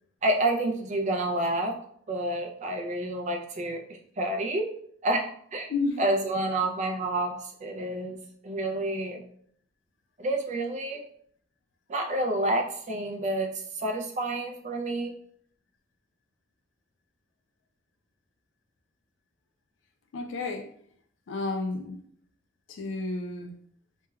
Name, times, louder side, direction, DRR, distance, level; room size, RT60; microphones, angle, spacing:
voice 1, 0.2-1.8 2.1-4.7 5.0-5.7 6.0-8.2 8.4-9.2 10.2-11.1 11.9-15.1, right 1 dB, 40° right, 0.4 m, -29 dB
voice 2, 20.1-20.7 21.3-22.0 22.7-23.6, left 3 dB, 65° left, 0.4 m, -31 dB
3.1 x 2.2 x 2.2 m
head